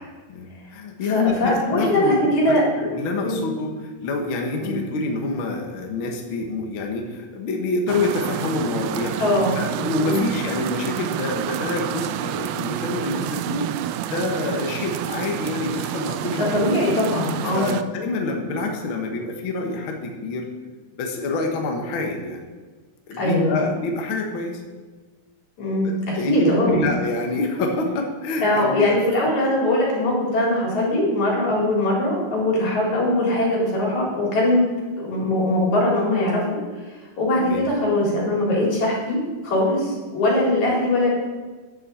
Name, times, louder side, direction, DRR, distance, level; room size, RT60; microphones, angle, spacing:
voice 1, 0.3-3.7 4.0-9.2 9.5-13.7 14.0-16.6 17.5-20.5 21.0-22.4 23.1-24.6 25.8-29.2 37.4-37.7, left 3 dB, 65° left, 2 dB, 1.2 m, -27 dB
voice 2, 1.0-2.6 3.2-3.4 4.6-4.8 9.2-9.5 10.0-10.2 16.3-17.7 23.2-23.6 25.6-25.9 26.2-26.8 28.4-34.6 35.0-36.4 37.2-41.1, left 1 dB, 50° left, -4 dB, 4.9 m, -21 dB
sound 1, 7.9-17.8, right 12 dB, 85° right, 2.4 m, -29 dB
11.0 x 7.1 x 7.7 m, 1.4 s
omnidirectional pair, 4.4 m